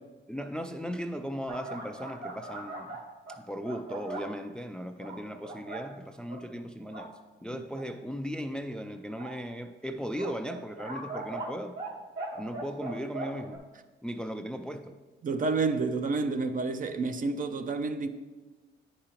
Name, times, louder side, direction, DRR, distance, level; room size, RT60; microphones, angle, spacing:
voice 1, 0.3-3.0 3.3-7.1 7.4-11.8 12.4-13.6 14.0-14.9, equal, 5° left, 0.3 m, -37 dB
sound 1, 1.5-4.3 5.0-5.8 6.3-6.4 6.8-7.1 7.7-7.8 9.2-9.3 10.2-11.9 12.2-13.6, right 2 dB, 60° right, 1.8 m, -39 dB
voice 2, 15.2-18.1, right 3 dB, 45° right, 0.5 m, -29 dB
9.9 x 4.9 x 2.9 m
cardioid pair, 90°, 20 cm